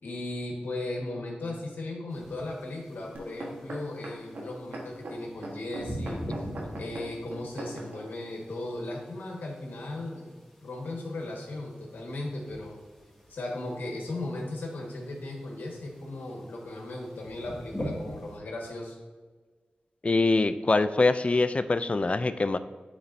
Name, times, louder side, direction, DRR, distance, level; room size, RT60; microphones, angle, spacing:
voice 1, 0.0-6.5 6.8-10.3 10.6-12.8 13.3-19.0, left 2 dB, 90° left, -1 dB, 1.4 m, -37 dB
sound 1, 2.1-18.4, equal, 5° left, 2.0 m, -44 dB
sound 2, 3.1-8.0 8.7-8.8, right 1 dB, 85° right, 1.2 m, -39 dB
voice 2, 20.0-22.6, left 3 dB, 40° left, 12 dB, 0.4 m, -24 dB
10.0 x 4.1 x 2.6 m, 1.4 s
cardioid pair, 50°, 3 cm